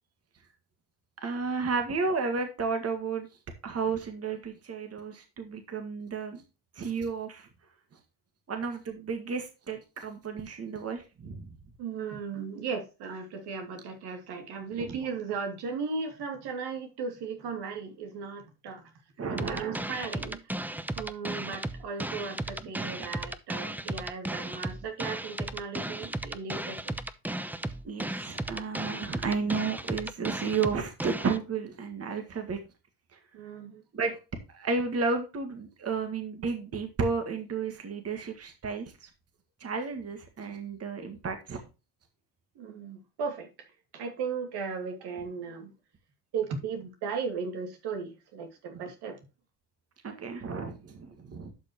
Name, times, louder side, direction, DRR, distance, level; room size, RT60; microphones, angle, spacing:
voice 1, 1.2-3.3 3.6-6.4 6.8-7.5 8.5-11.5 14.8-15.0 19.2-19.8 22.8-22.9 27.8-32.6 33.1-33.2 33.9-34.1 34.5-39.1 39.6-41.6 50.0-51.5, right 4 dB, 35° right, 1.9 m, -32 dB
voice 2, 11.8-18.8 19.3-20.4 20.9-26.9 33.3-33.8 42.6-43.5 43.9-45.7 46.3-49.2, right 5 dB, 75° right, 2.7 m, -36 dB
sound 1, 19.4-31.4, right 1 dB, 5° right, 0.7 m, -35 dB
11.5 x 5.5 x 3.0 m
cardioid pair, 95°, 40 cm